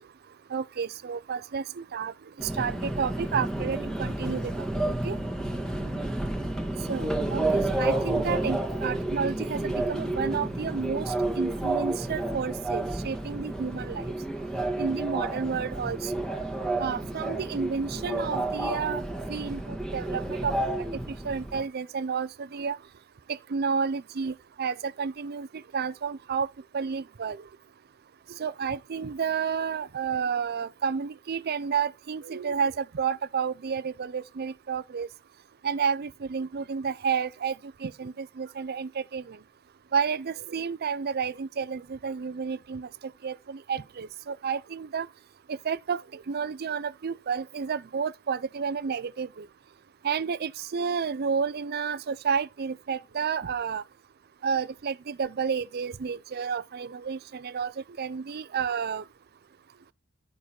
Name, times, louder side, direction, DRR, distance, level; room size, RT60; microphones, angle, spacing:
voice 1, 0.5-2.1 2.6-5.2 6.9-14.0 14.8-16.1 16.8-19.0 19.3-20.5 21.2-22.8 23.3-25.5 25.7-26.5 26.7-27.4 28.4-35.1 35.6-37.5 37.8-39.4 39.9-42.9 43.2-45.1 45.5-46.0 46.3-49.4 50.0-53.8 54.4-57.7 58.0-59.0, right 6 dB, 50° right, 0.5 m, -31 dB
Subway metro underground, 2.4-21.6, right 2 dB, ahead, 1.6 m, -30 dB
11.0 x 6.1 x 4.3 m
head